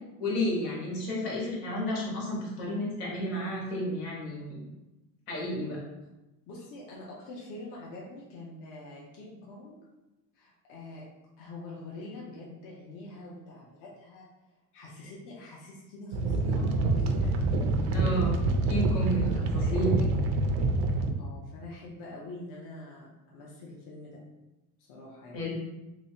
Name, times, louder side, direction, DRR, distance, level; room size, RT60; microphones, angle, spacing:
voice 1, 0.2-4.6 5.3-5.8 17.9-18.4 18.7-19.9 25.3-25.5, equal, 85° left, -4 dB, 1.5 m, -31 dB
voice 2, 6.5-9.8 10.3-11.1 11.4-14.3 14.7-17.4 19.6-19.9 21.2-24.2 24.8-25.4, left 2 dB, 50° left, -4 dB, 0.7 m, -45 dB
sound 1, 16.1-21.1, right 2 dB, 65° right, 0.5 m, -26 dB
3.2 x 3.0 x 2.8 m, 1.0 s
cardioid pair, 155°, 40 cm